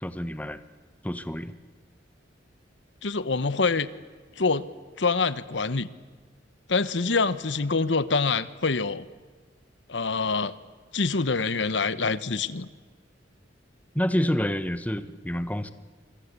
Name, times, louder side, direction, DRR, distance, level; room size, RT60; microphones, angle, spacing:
voice 1, 0.0-0.6 1.0-1.5 13.9-15.7, equal, 10° left, 11 dB, 1.2 m, -28 dB
voice 2, 3.0-3.9 4.4-4.7 5.0-5.9 6.7-9.0 9.9-10.5 10.9-12.7, left 4 dB, 70° left, 15 dB, 1.1 m, -25 dB
25.0 x 25.0 x 8.4 m, 1.5 s
head